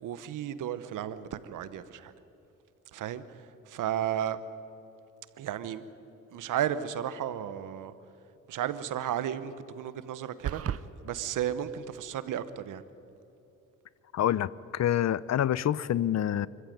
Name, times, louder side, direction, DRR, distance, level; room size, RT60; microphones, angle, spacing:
voice 1, 0.0-2.1 2.9-4.4 5.4-5.8 6.3-7.9 8.5-10.6 11.0-12.8, right 10 dB, 85° right, 1.1 m, -33 dB
sound 1, 10.4-10.8, right 9 dB, 50° right, 0.7 m, -32 dB
voice 2, 14.1-16.5, left 11 dB, 60° left, 0.7 m, -27 dB
25.0 x 14.5 x 9.3 m
cardioid pair, 80°, 31 cm